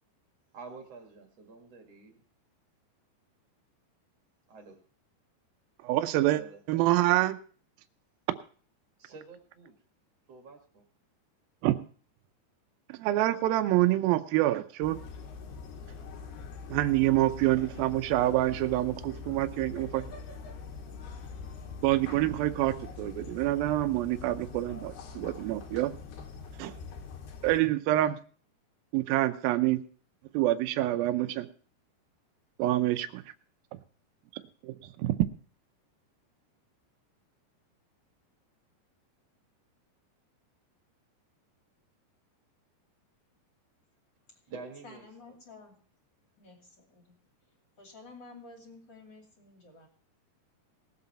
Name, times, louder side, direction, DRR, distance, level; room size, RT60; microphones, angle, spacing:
voice 1, 0.5-2.2 4.5-4.7 6.3-6.6 9.0-9.7 10.3-10.8 44.5-45.0, right 4 dB, 50° right, 3 dB, 2.1 m, -47 dB
voice 2, 5.8-6.4 6.7-7.4 11.6-11.7 12.9-15.0 16.7-20.0 21.8-25.9 26.6-26.7 27.4-28.2 28.9-29.8 30.3-31.5 32.6-33.2 34.6-34.7 35.0-35.1, right 15 dB, 80° right, 10 dB, 2.1 m, -26 dB
sound 1, 14.8-27.6, left 5 dB, 70° left, 3.5 m, -43 dB
voice 3, 44.8-45.8 46.4-47.2 47.8-49.9, left 3 dB, 30° left, 1 dB, 2.7 m, -51 dB
19.5 x 8.0 x 4.2 m, 0.43 s
omnidirectional pair, 5.0 m